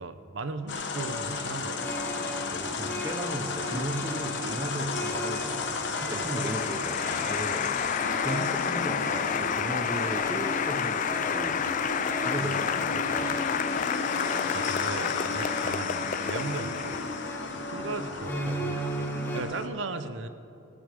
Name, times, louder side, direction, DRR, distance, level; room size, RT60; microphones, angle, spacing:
voice 1, 0.0-1.8 3.6-4.0 4.4-4.6 6.1-6.3 14.5-17.0 17.5-18.9 19.3-20.3, right 3 dB, 65° right, 10 dB, 0.7 m, -37 dB
sound 1, 0.7-19.7, left 4 dB, 60° left, 1.0 m, -34 dB
sound 2, 1.0-19.4, right 1 dB, 10° left, 1.1 m, -38 dB
voice 2, 2.5-5.7 6.0-7.8 8.2-11.6 12.2-13.5 17.8-18.7, right 1 dB, 15° right, 6 dB, 0.7 m, -36 dB
Applause, 5.0-17.5, left 7 dB, 40° left, 0.3 m, -31 dB
18.5 x 7.1 x 6.7 m, 2.8 s
head